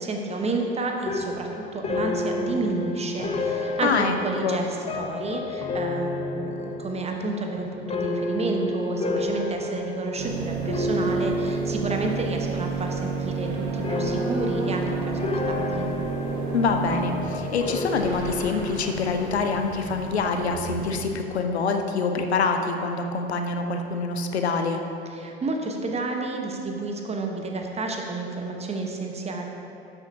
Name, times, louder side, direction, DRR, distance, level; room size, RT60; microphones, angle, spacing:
voice 1, 0.0-15.9 25.1-29.5, right 3 dB, 20° right, 2 dB, 1.1 m, -30 dB
sound 1, 1.1-12.5 12.8-13.4 13.8-19.2, left 2 dB, 20° left, 0.8 m, -30 dB
voice 2, 3.8-4.1 4.4-4.6 16.5-24.8, left 4 dB, 75° left, 5 dB, 0.8 m, -25 dB
sound 2, 10.2-21.0, right 4 dB, 55° right, 1.6 m, -31 dB
12.5 x 8.2 x 2.8 m, 2.8 s
figure-of-eight pair, 75°, 33 cm